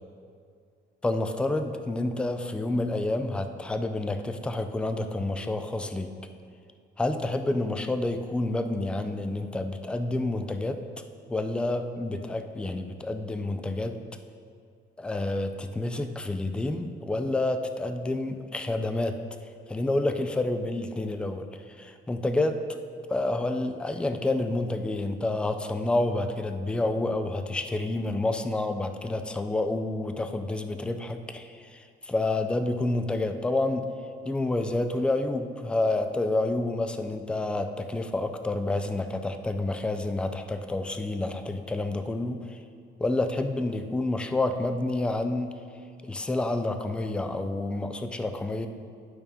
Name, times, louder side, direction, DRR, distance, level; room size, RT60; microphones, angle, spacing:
voice 1, 1.0-6.1 7.0-10.8 11.3-14.0 15.0-19.2 19.7-22.8 23.1-33.9 34.3-42.6 43.0-45.6 46.0-48.7, left 2 dB, 5° left, 8 dB, 0.3 m, -29 dB
11.0 x 5.2 x 3.6 m, 2.3 s
cardioid pair, 145°, 19 cm